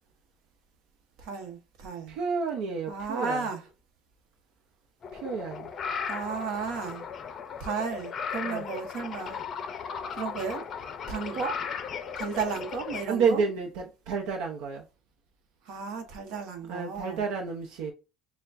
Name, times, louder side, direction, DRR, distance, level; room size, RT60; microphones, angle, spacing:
voice 1, 1.2-2.2 2.9-3.6 6.1-7.1 7.6-9.4 10.1-10.6 11.1-11.6 12.2-13.4 15.6-17.2, right 5 dB, 65° right, 1.1 m, -34 dB
voice 2, 2.1-3.5 5.1-5.7 8.4-8.6 13.1-14.8 16.7-17.9, right 5 dB, 85° right, 0.7 m, -30 dB
sound 1, 5.0-13.0, left 6 dB, 35° left, 0.5 m, -36 dB
6.7 x 2.3 x 2.6 m
cardioid pair, 160°, 0 cm